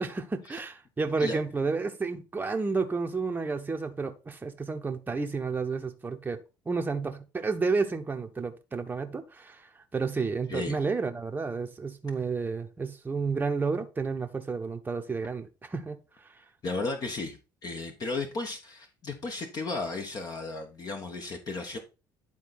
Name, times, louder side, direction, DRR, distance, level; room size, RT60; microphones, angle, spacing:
voice 1, 0.0-16.4, right 4 dB, 20° right, 0.9 m, -31 dB
voice 2, 16.6-17.4 17.6-21.8, left 3 dB, 40° left, 1.3 m, -34 dB
10.5 x 4.3 x 4.2 m
figure-of-eight pair, 55°, 10 cm